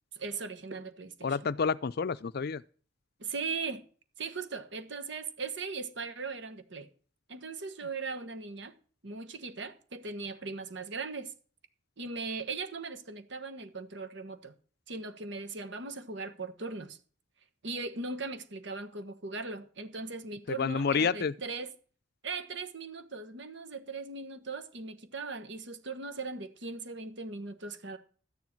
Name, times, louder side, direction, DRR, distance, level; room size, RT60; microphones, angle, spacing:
voice 1, 0.1-1.4 3.2-3.8 4.2-6.9 7.3-8.7 9.0-11.3 12.0-14.5 14.9-17.0 17.6-21.7 22.2-28.0, right 4 dB, 65° right, 1.3 m, -39 dB
voice 2, 1.2-2.6 20.5-21.3, left 5 dB, 55° left, 0.5 m, -29 dB
13.0 x 9.7 x 4.5 m
head